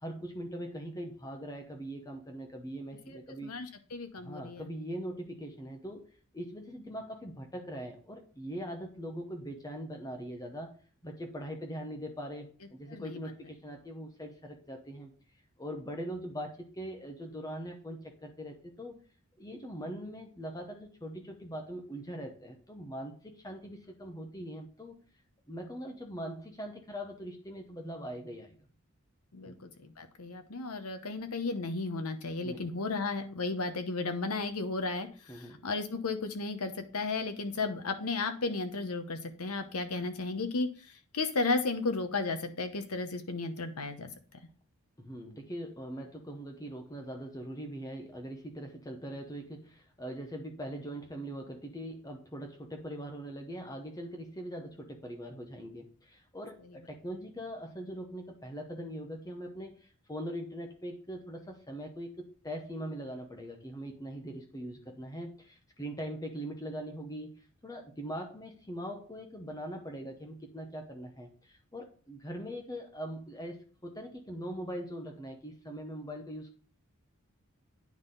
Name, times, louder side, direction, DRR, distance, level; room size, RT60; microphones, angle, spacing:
voice 1, 0.0-3.7 4.2-10.8 11.0-15.1 15.6-19.0 19.4-24.9 25.5-28.6 29.4-29.6 32.4-32.7 35.3-35.6 45.0-76.6, equal, 15° left, 3 dB, 0.9 m, -41 dB
voice 2, 3.1-4.7 12.9-13.2 29.3-29.5 29.8-40.7 41.1-44.1, left 3 dB, 85° left, 7 dB, 0.9 m, -34 dB
9.4 x 4.0 x 3.9 m, 0.40 s
head